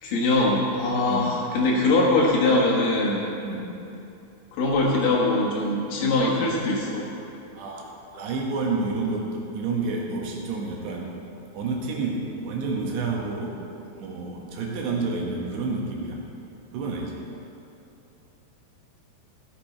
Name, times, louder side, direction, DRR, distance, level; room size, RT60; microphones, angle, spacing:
voice 1, 0.0-3.2 4.5-7.0, left 2 dB, 65° left, -3 dB, 2.4 m, -22 dB
voice 2, 7.6-11.1 11.5-13.6 14.0-16.2 16.7-17.2, right 3 dB, 70° right, -1 dB, 3.3 m, -29 dB
17.5 x 6.9 x 4.4 m, 2.8 s
omnidirectional pair, 5.5 m